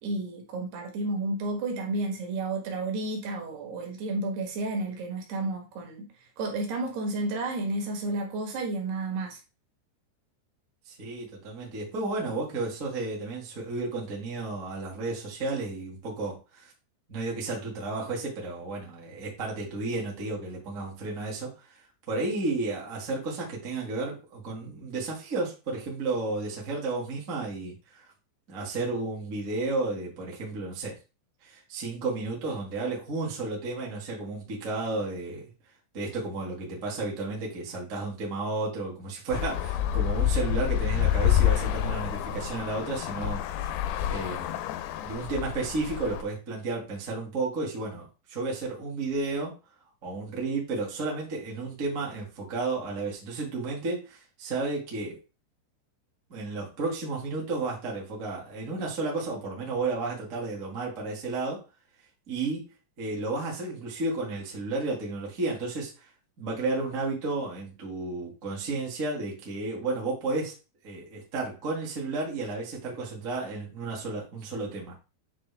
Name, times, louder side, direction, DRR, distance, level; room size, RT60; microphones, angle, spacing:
voice 1, 0.0-6.1 6.4-9.4, right 2 dB, 65° right, 3.2 m, -31 dB
voice 2, 10.9-16.7 17.1-28.1 28.5-31.0 31.4-35.5 35.9-43.7 44.1-49.5 50.0-55.2 56.3-61.6 62.3-62.6 63.0-66.1 66.4-70.5 70.8-74.9, right 3 dB, 80° right, 0.7 m, -32 dB
Traffic noise roadway noise, 39.3-46.2, left 11 dB, 85° left, 2.4 m, -28 dB
9.3 x 3.2 x 3.4 m
omnidirectional pair, 5.5 m